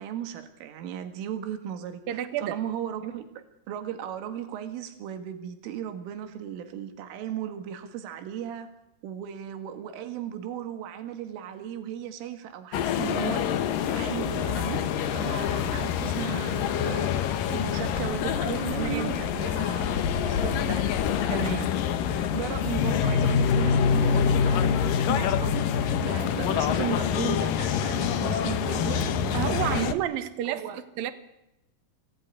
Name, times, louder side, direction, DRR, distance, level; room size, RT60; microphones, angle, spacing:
voice 1, 0.0-8.7 9.0-13.5 13.9-14.9 15.1-20.9 22.3-30.1 30.5-30.8, right 10 dB, 85° right, 4.5 m, -36 dB
voice 2, 2.1-2.6 18.8-19.1 21.3-21.8 22.2-22.3 29.3-30.6 31.0-31.1, right 12 dB, 60° right, 2.8 m, -30 dB
sound 1, 12.7-29.9, left 7 dB, 70° left, 2.2 m, -26 dB
26.5 x 17.5 x 9.9 m
omnidirectional pair, 5.6 m